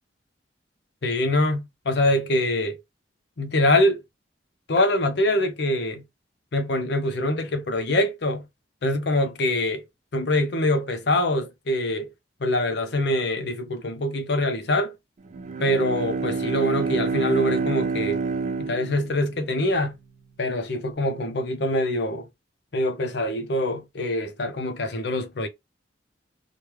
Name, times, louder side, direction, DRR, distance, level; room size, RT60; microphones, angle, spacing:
voice 1, 1.0-2.8 3.4-4.0 4.7-6.0 6.5-8.4 8.8-9.8 10.1-12.1 12.4-14.9 15.6-18.2 18.6-20.0 20.4-22.3 22.7-25.5, left 1 dB, 65° left, 0.6 m, -24 dB
Bowed string instrument, 15.3-19.7, right 4 dB, 40° right, 0.3 m, -28 dB
3.1 x 2.2 x 3.1 m
head